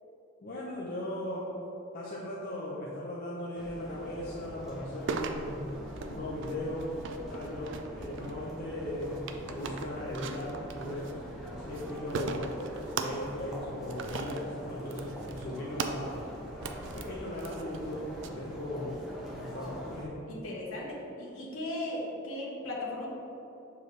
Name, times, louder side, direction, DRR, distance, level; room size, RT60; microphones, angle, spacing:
voice 1, 0.4-1.5 1.9-5.7 6.0-6.9 7.3-11.2 11.5-12.6 13.0-16.2 16.8-19.0 19.3-20.2, left 1 dB, 45° left, -6 dB, 0.7 m, -38 dB
sound 1, 3.5-20.1, equal, ahead, 0.8 m, -43 dB
sound 2, 5.1-18.3, right 4 dB, 60° right, 0.4 m, -40 dB
voice 2, 20.3-23.1, left 1 dB, 90° left, -3 dB, 1.2 m, -37 dB
6.7 x 4.7 x 3.2 m, 2.9 s
head